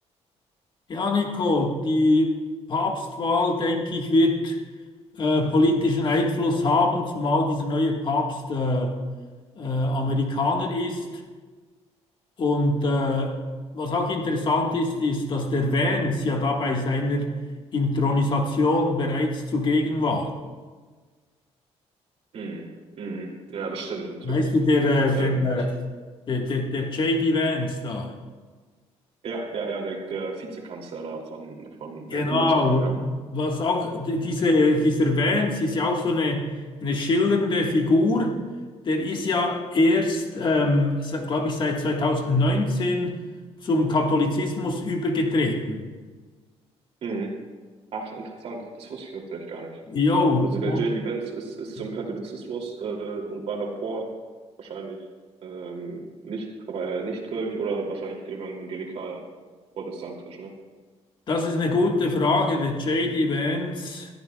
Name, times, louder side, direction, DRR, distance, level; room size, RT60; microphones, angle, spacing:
voice 1, 0.9-2.3 2.7-4.6 5.2-8.9 9.5-11.0 12.4-13.3 13.7-17.3 17.7-20.3 24.2-25.7 26.3-28.1 32.1-36.5 36.8-38.4 38.8-43.1 43.6-45.8 49.9-50.8 61.3-64.1, left 2 dB, 45° left, 2 dB, 1.6 m, -23 dB
voice 2, 22.3-22.7 23.0-24.4 25.1-25.7 29.2-32.9 47.0-47.3 47.9-49.8 50.4-54.1 54.6-55.0 55.4-59.2 59.8-60.5, right 4 dB, 60° right, 0 dB, 2.8 m, -33 dB
21.0 x 14.0 x 2.4 m, 1.4 s
cardioid pair, 125°, 12 cm